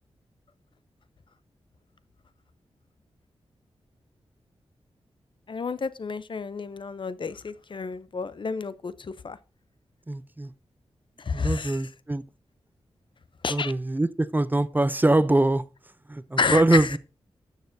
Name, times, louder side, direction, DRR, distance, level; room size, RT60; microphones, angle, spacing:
voice 1, 5.5-9.4 11.2-11.8 13.4-13.7 16.4-17.0, left 5 dB, 50° left, 0.5 m, -30 dB
voice 2, 10.1-10.5 11.3-12.2 13.5-15.6 16.1-17.0, right 2 dB, 15° right, 0.5 m, -23 dB
12.5 x 6.6 x 2.6 m
cardioid pair, 55°, 11 cm